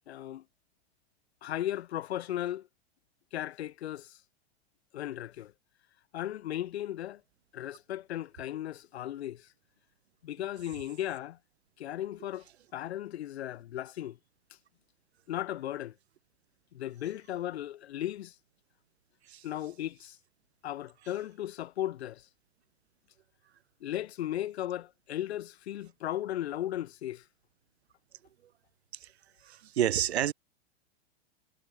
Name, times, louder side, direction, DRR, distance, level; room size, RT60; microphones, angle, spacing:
voice 1, 0.1-0.4 1.4-2.7 3.3-4.2 4.9-5.5 6.1-7.2 7.5-9.5 10.2-11.4 11.8-12.4 12.7-14.2 15.3-15.9 16.7-18.4 19.4-20.2 20.6-22.3 23.8-27.2, left 12 dB, 85° left, 0.8 m, -36 dB
voice 2, 29.4-30.3, right 11 dB, 90° right, 1.1 m, -29 dB
hypercardioid pair, 120°, 32 cm